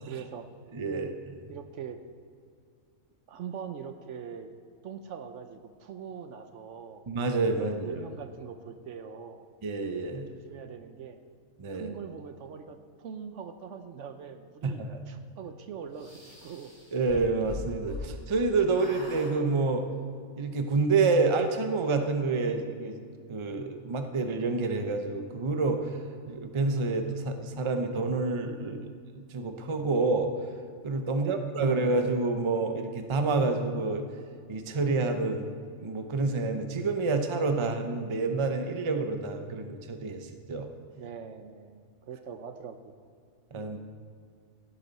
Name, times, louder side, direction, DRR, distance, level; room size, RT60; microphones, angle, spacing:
voice 1, 0.1-0.5 0.9-1.1 1.5-2.0 3.3-4.5 4.8-7.0 7.6-9.5 10.3-11.2 11.7-16.7 31.2-31.7 41.0-43.0, right 7 dB, 65° right, 8 dB, 0.9 m, -42 dB
voice 2, 0.7-1.3 7.1-8.1 9.6-10.3 11.6-11.9 14.6-15.0 16.9-19.9 20.4-23.0 23.3-26.0 26.3-30.3 30.8-34.0 34.5-40.7 43.5-43.8, right 3 dB, 30° right, 6 dB, 0.6 m, -28 dB
sound 1, 16.0-18.4 18.7-19.3, left 2 dB, 30° left, 2.8 m, -42 dB
16.5 x 8.3 x 4.1 m, 2.3 s
omnidirectional pair, 1.4 m